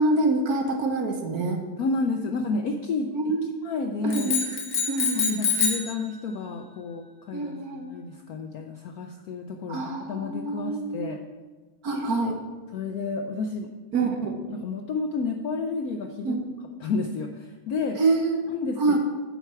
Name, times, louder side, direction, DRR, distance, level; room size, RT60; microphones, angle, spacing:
voice 1, 0.0-1.6 3.1-3.5 4.0-4.5 4.9-5.4 7.3-8.0 9.7-11.1 11.8-12.4 13.9-14.3 16.2-16.4 18.0-18.4 18.8-19.0, right 3 dB, 55° right, 3 dB, 1.2 m, -26 dB
voice 2, 1.8-3.1 3.6-4.4 5.2-11.2 12.7-13.7 14.0-14.1 14.5-16.4 16.8-17.3 17.7-18.0 18.6-19.0, left 4 dB, 75° left, 4 dB, 0.8 m, -30 dB
sound 1, 4.1-5.9, left 4 dB, 40° left, 1.7 m, -26 dB
8.9 x 4.6 x 6.7 m, 1.3 s
omnidirectional pair, 2.1 m